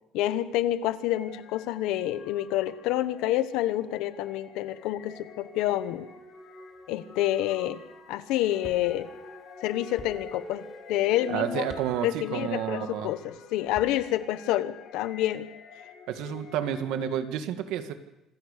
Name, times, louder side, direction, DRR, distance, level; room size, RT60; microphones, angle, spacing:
voice 1, 0.1-6.1 6.9-7.8 8.1-9.1 9.6-11.7 12.0-15.5, left 13 dB, 85° left, 13 dB, 1.2 m, -28 dB
sound 1, 1.0-17.2, left 6 dB, 65° left, 4.8 m, -48 dB
sound 2, 4.7-11.7, right 1 dB, 10° right, 2.3 m, -49 dB
sound 3, 8.6-8.8 10.0-10.1 11.6-11.9 13.6-14.0, left 4 dB, 25° left, 2.8 m, -44 dB
voice 2, 11.3-13.1 16.1-17.9, right 10 dB, 75° right, 8 dB, 1.9 m, -30 dB
26.5 x 15.5 x 6.8 m, 0.94 s
cardioid pair, 165°, 0 cm